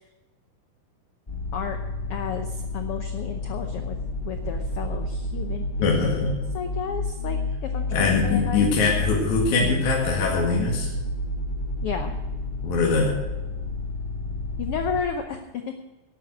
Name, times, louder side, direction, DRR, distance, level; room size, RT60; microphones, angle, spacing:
sound 1, 1.3-15.0, left 2 dB, 15° left, 2.4 m, -30 dB
voice 1, 2.1-4.0 4.2-6.2 6.5-8.7 11.8-12.2 14.6-15.4 15.7-15.8, left 7 dB, 85° left, 6 dB, 1.2 m, -32 dB
voice 2, 5.8-6.3 7.9-10.9 12.6-13.1, left 3 dB, 60° left, -2 dB, 3.3 m, -22 dB
12.0 x 9.0 x 7.9 m, 1.1 s
omnidirectional pair, 3.9 m